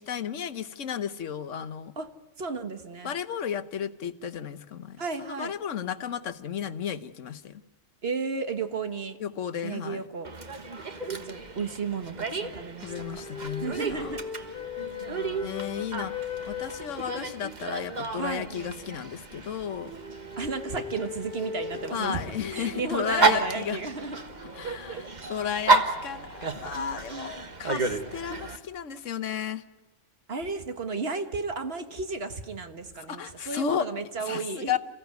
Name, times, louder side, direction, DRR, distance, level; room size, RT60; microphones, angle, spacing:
voice 1, 0.0-1.9 3.0-7.6 9.2-10.1 12.8-14.1 15.4-16.1 16.5-19.9 21.9-23.8 24.6-25.0 25.3-29.6 33.1-33.9 34.2-34.8, left 8 dB, 80° left, 12 dB, 1.3 m, -33 dB
voice 2, 2.4-3.1 5.0-5.5 8.0-9.2 9.6-10.6 11.1-13.3 13.6-14.2 14.8-15.9 18.2-18.5 20.4-22.2 22.5-24.2 24.6-25.0 26.7-27.3 30.3-34.8, right 4 dB, 55° right, 8 dB, 1.7 m, -34 dB
Dog, 10.2-28.6, right 3 dB, 35° right, 1.4 m, -32 dB
sound 1, 12.9-17.7 19.6-24.6, left 6 dB, 40° left, 2.1 m, -39 dB
28.5 x 16.0 x 9.3 m, 1.1 s
omnidirectional pair, 1.3 m